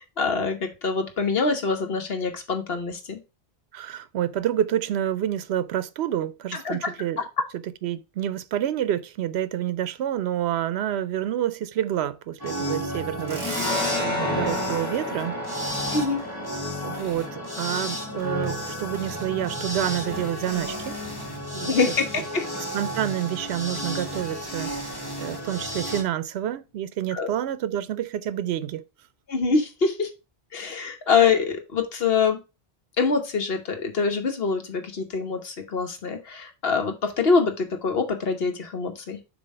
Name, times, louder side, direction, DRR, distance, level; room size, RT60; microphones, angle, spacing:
voice 1, 0.0-3.2 6.6-7.2 15.9-16.2 21.6-22.1 22.3-22.5 27.1-27.3 29.3-30.1 30.5-32.4 33.0-39.2, left 5 dB, 70° left, 1.3 m, -25 dB
voice 2, 3.7-7.2 7.8-15.3 16.8-21.0 21.5-21.7 22.6-24.7 25.2-28.8, right 11 dB, 80° right, 0.8 m, -28 dB
sound 1, 12.4-26.0, equal, 20° left, 1.5 m, -32 dB
sound 2, 13.3-20.5, left 2 dB, 25° right, 2.5 m, -32 dB
7.1 x 2.9 x 5.3 m
omnidirectional pair, 1.1 m